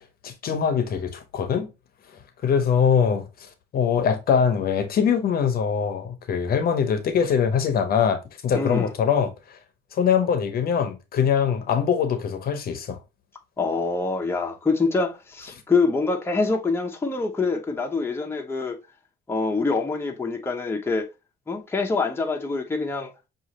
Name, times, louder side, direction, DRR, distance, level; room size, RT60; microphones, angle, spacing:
voice 1, 0.2-1.7 2.4-9.6 9.9-13.0, left 7 dB, 55° left, 0.7 m, -23 dB
voice 2, 8.5-8.9 13.6-18.8 19.3-21.1 21.5-23.1, left 3 dB, 15° left, 0.7 m, -25 dB
6.1 x 2.5 x 2.9 m
cardioid pair, 115°, 19 cm